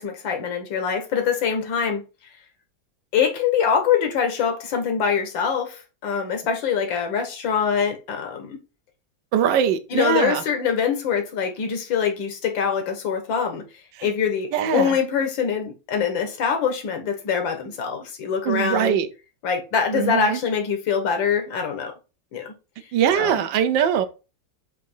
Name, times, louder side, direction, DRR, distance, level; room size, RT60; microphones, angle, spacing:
voice 1, 0.0-2.0 3.1-8.6 9.9-13.6 14.0-19.0 19.4-21.9 22.3-22.5 23.2-23.3, left 7 dB, 85° left, 1.9 m, -24 dB
voice 2, 9.3-10.4 14.0-14.1 14.5-15.0 18.4-19.1 19.9-20.4 22.9-24.0, right 9 dB, 80° right, 1.4 m, -22 dB
7.6 x 2.8 x 5.3 m
omnidirectional pair, 2.0 m